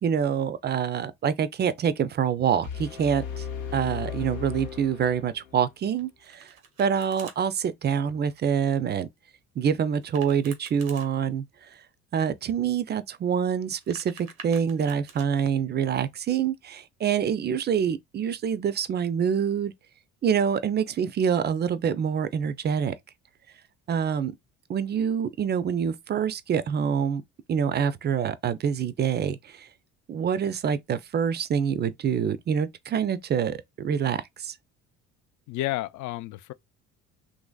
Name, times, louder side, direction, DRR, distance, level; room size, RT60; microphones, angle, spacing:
voice 1, 0.0-3.4 3.7-6.5 6.8-9.1 9.6-11.4 12.1-19.7 20.2-22.9 23.9-24.3 24.7-27.2 27.5-29.7 30.1-34.6, right 7 dB, 25° right, 0.4 m, -26 dB
sound 1, 2.6-5.7, left 7 dB, 90° left, 0.8 m, -36 dB
Domestic sounds home sounds, 6.0-7.4 9.9-11.1 13.6-15.3, right 6 dB, 90° right, 0.9 m, -47 dB
voice 2, 35.5-36.5, left 16 dB, 50° left, 0.4 m, -31 dB
3.0 x 2.6 x 2.3 m
hypercardioid pair, 55°, 40 cm